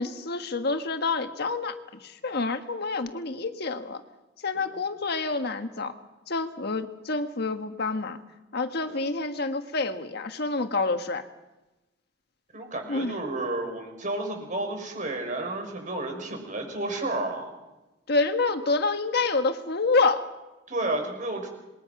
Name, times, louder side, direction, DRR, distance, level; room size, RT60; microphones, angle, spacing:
voice 1, 0.0-1.7 2.0-4.0 4.4-5.9 6.3-8.2 8.5-11.2 12.9-13.2 18.1-20.3, left 3 dB, 60° left, 7 dB, 1.5 m, -27 dB
voice 2, 12.5-17.5 20.7-21.5, right 2 dB, 45° right, 4 dB, 5.8 m, -31 dB
27.5 x 20.5 x 6.0 m, 1.0 s
head